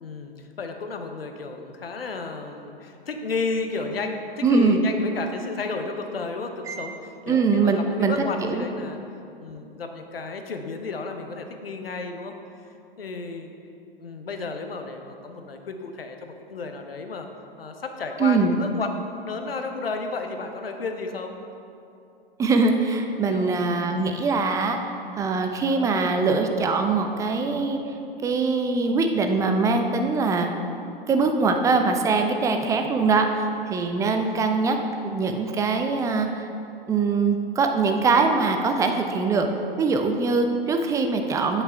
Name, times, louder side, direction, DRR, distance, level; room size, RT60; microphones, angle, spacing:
voice 1, 0.0-9.0 9.4-12.3 13.0-13.5 14.0-17.3 17.6-21.3 23.3-24.1 34.0-34.1, left 3 dB, 75° left, 5 dB, 0.9 m, -33 dB
voice 2, 4.4-4.8 6.7-6.8 7.3-8.1 8.5-8.7 18.2-18.5 22.4-24.8 25.2-27.8 28.2-30.5 31.1-34.8 35.0-36.5 36.9-39.5 39.8-41.6, right 4 dB, 10° right, 5 dB, 0.4 m, -22 dB
9.4 x 5.6 x 4.5 m, 2.7 s
figure-of-eight pair, 100°, 29 cm